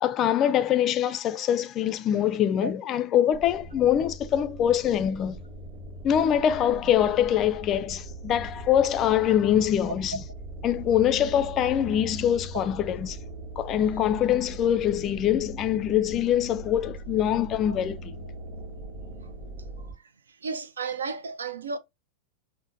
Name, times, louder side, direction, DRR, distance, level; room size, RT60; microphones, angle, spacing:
voice 1, 0.0-5.4 6.0-10.2 10.6-13.2 13.6-18.1, left 10 dB, 30° left, 0.3 m, -24 dB
sound 1, 3.3-19.9, right 1 dB, 25° right, 0.8 m, -40 dB
voice 2, 20.4-21.8, right 4 dB, 70° right, 0.4 m, -32 dB
6.0 x 2.1 x 2.5 m
figure-of-eight pair, 90°, 0 cm